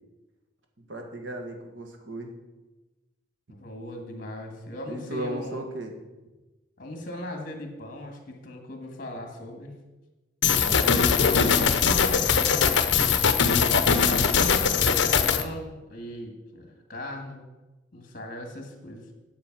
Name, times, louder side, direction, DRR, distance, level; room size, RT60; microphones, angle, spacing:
voice 1, 0.9-2.3 4.9-6.0 10.6-11.5, right 1 dB, 80° right, 3 dB, 1.7 m, -35 dB
voice 2, 3.5-5.6 6.8-9.7 11.1-11.4 11.9-12.9 13.9-17.5 17.9-19.1, left 1 dB, 45° left, 3 dB, 1.7 m, -39 dB
sound 1, 10.4-15.4, left 6 dB, 65° left, 0.7 m, -21 dB
8.6 x 7.7 x 6.1 m, 1.1 s
head